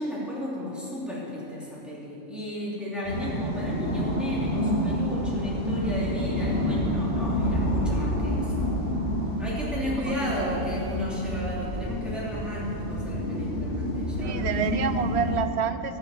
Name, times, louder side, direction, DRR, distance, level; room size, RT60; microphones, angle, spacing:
voice 1, 0.0-9.0 9.4-14.6, left 1 dB, ahead, -7 dB, 2.9 m, -33 dB
sound 1, 3.0-15.4, equal, 40° left, 3.0 m, -28 dB
voice 2, 9.9-10.6 14.2-16.0, right 7 dB, 65° right, 11 dB, 0.7 m, -30 dB
12.0 x 7.3 x 8.4 m, 3.0 s
omnidirectional pair, 1.4 m